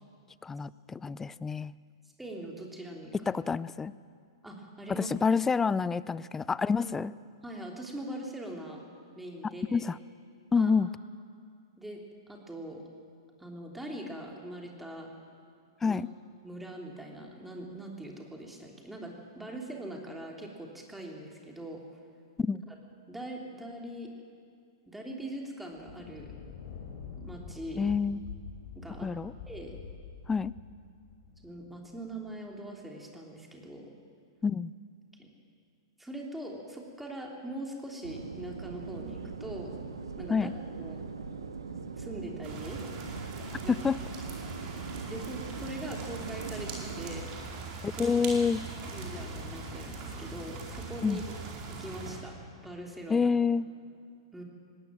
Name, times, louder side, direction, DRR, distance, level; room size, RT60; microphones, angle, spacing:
voice 1, 0.4-1.7 3.3-3.9 4.9-7.1 9.7-10.0 10.5-10.9 15.8-16.1 22.4-22.6 27.8-28.2 29.0-29.3 30.3-30.6 34.4-34.7 40.3-40.5 43.7-44.0 47.8-48.6 51.0-51.2 53.1-53.7, left 5 dB, 15° left, 20 dB, 0.4 m, -28 dB
voice 2, 2.2-3.3 4.4-5.1 7.4-8.8 9.1-9.8 10.5-10.7 11.8-12.8 13.4-15.1 15.9-16.0 16.4-21.8 22.7-22.8 23.1-24.1 24.9-26.3 27.1-27.8 28.7-29.1 29.5-29.8 31.4-33.9 35.2-35.3 36.0-39.7 40.2-40.5 40.8-41.0 41.9-42.8 43.6-43.7 45.1-47.4 47.9-48.0 48.9-51.2 51.7-52.3 52.6-53.3 54.3-54.4, right 1 dB, 5° right, 0 dB, 3.3 m, -42 dB
Thunder, 25.7-32.4, left 6 dB, 55° left, 4.2 m, -46 dB
sound 1, 38.0-47.2, right 5 dB, 80° right, 1.5 m, -41 dB
sound 2, 42.4-52.2, right 3 dB, 40° right, 4.7 m, -41 dB
20.0 x 17.5 x 7.6 m, 2.2 s
figure-of-eight pair, 110°, 2 cm